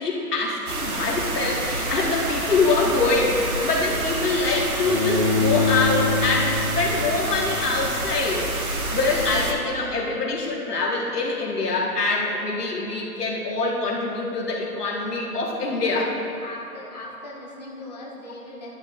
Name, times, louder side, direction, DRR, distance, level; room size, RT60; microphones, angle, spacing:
voice 1, 0.0-8.5 8.9-16.2, left 3 dB, 80° left, -3 dB, 2.1 m, -24 dB
sound 1, 0.7-9.5, right 2 dB, 65° right, 1.6 m, -28 dB
Bowed string instrument, 4.9-7.9, left 3 dB, 35° right, 1.3 m, -25 dB
voice 2, 9.2-9.7 16.4-18.7, left 1 dB, 30° left, -5 dB, 0.7 m, -39 dB
11.0 x 11.0 x 2.6 m, 3.0 s
hypercardioid pair, 165°, 46 cm